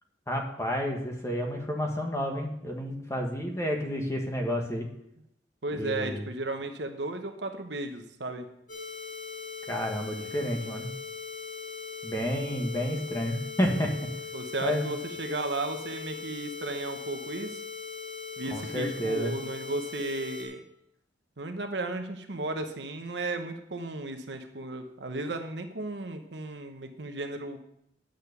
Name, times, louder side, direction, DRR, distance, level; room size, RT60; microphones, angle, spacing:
voice 1, 0.3-4.9 5.7-6.2 9.7-10.9 12.0-13.9 14.6-14.8 18.5-19.3, equal, 15° left, 1 dB, 1.5 m, -30 dB
voice 2, 5.6-8.5 14.3-17.6 18.4-20.6 21.4-27.6, right 2 dB, 70° right, 6 dB, 1.1 m, -34 dB
sound 1, 8.7-20.4, left 6 dB, 45° left, 2.6 m, -40 dB
9.7 x 6.6 x 6.8 m, 0.76 s
head